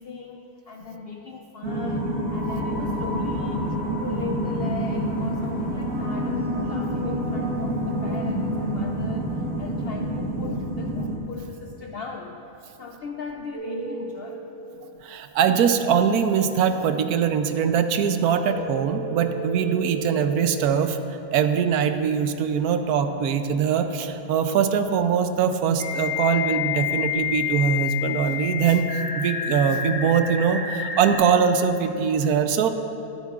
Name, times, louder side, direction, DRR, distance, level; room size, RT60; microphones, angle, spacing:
voice 1, 0.0-3.7 4.0-9.3 9.6-12.4 12.8-14.4, left 4 dB, 70° left, 2 dB, 0.5 m, -38 dB
sound 1, 1.6-11.2, equal, 65° right, 1.7 m, -27 dB
sound 2, 13.5-14.4 18.4-20.4 23.0-23.1 25.8-31.2, left 6 dB, 20° left, 2.7 m, -30 dB
voice 2, 15.0-21.0 21.3-28.9 29.2-32.7, right 7 dB, 90° right, 8 dB, 1.1 m, -22 dB
20.5 x 8.3 x 2.4 m, 2.9 s
omnidirectional pair, 1.6 m